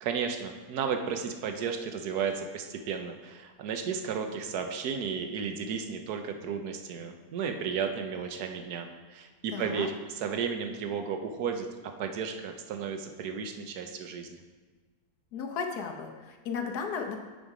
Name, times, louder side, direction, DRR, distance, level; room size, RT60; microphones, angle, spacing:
voice 1, 0.0-11.7 12.0-14.4, right 6 dB, 80° right, 5 dB, 1.2 m, -33 dB
voice 2, 9.5-9.9 15.3-17.2, left 6 dB, 85° left, 4 dB, 1.4 m, -35 dB
6.3 x 5.3 x 4.8 m, 1.4 s
omnidirectional pair, 1.6 m